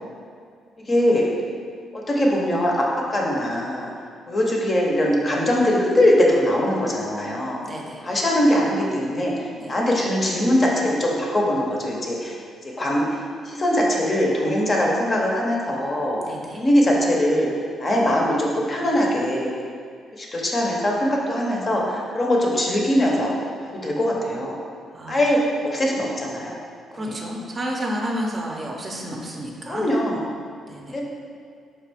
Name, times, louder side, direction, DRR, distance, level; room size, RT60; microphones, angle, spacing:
voice 1, 0.9-1.2 1.9-2.8 3.1-3.9 4.3-7.6 8.0-9.3 9.7-12.4 12.8-13.2 13.4-16.2 16.6-17.5 17.8-19.5 20.1-23.3 23.6-24.6 25.1-26.6 26.9-27.2 29.7-30.2 30.9-31.0, left 1 dB, 35° left, -2 dB, 0.7 m, -21 dB
voice 2, 7.6-8.0 9.6-9.7 16.2-16.6 24.9-25.2 26.9-29.8 30.7-31.0, equal, 35° right, -1 dB, 0.5 m, -31 dB
4.2 x 2.4 x 3.4 m, 2.2 s
cardioid pair, 90°, 0 cm